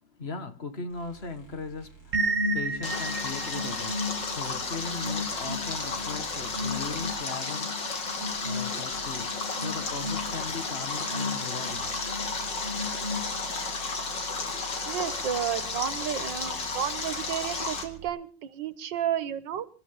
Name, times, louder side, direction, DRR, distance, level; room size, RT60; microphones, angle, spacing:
voice 1, 0.0-8.0 8.4-11.9, left 4 dB, 35° left, 1.8 m, -38 dB
sound 1, 0.9-18.1, right 6 dB, 55° left, 5.9 m, -49 dB
sound 2, 2.1-13.8, equal, 45° right, 1.9 m, -34 dB
Stream, 2.8-17.8, left 4 dB, 80° left, 3.0 m, -33 dB
voice 2, 14.9-19.7, right 10 dB, 85° right, 1.8 m, -32 dB
27.0 x 13.0 x 3.7 m
omnidirectional pair, 1.9 m